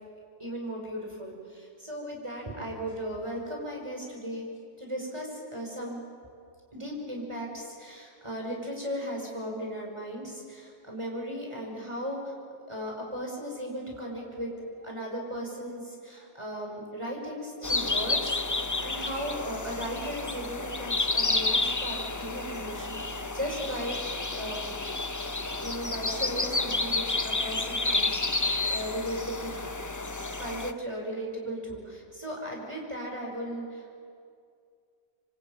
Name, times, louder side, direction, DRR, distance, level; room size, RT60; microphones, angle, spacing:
voice 1, 0.4-4.4 4.8-6.0 6.7-12.3 12.7-24.7 25.6-28.2 28.7-29.8 30.4-34.0, equal, 20° right, 0 dB, 5.7 m, -36 dB
sound 1, 17.6-30.7, left 3 dB, 30° left, 0.3 m, -30 dB
26.5 x 24.0 x 9.0 m, 2.3 s
omnidirectional pair, 1.7 m